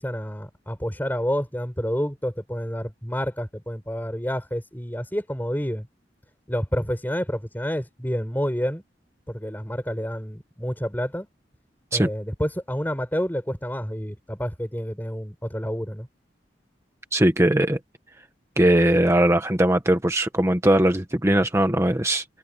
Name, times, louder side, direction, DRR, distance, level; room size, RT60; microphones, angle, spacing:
voice 1, 0.0-5.9 6.5-8.8 9.3-11.3 11.9-16.1, equal, 10° left, 5.7 m, -29 dB
voice 2, 17.1-17.8 18.6-22.2, right 1 dB, 15° right, 1.3 m, -20 dB
head